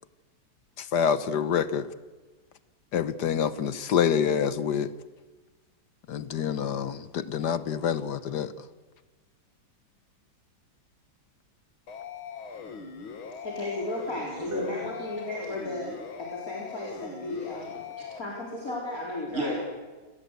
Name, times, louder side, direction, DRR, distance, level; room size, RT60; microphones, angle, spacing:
voice 1, 0.8-1.9 2.9-4.9 6.1-8.5, left 8 dB, 60° left, 14 dB, 1.4 m, -27 dB
sound 1, 11.9-18.2, left 6 dB, 85° left, 2.6 m, -41 dB
voice 2, 13.4-15.9 16.2-17.8 18.2-19.5, left 2 dB, 45° left, -3 dB, 4.4 m, -34 dB
voice 3, 14.3-15.1 17.7-18.2 19.3-19.6, right 1 dB, 35° right, -1 dB, 4.3 m, -34 dB
28.5 x 19.0 x 8.1 m, 1.3 s
omnidirectional pair, 2.2 m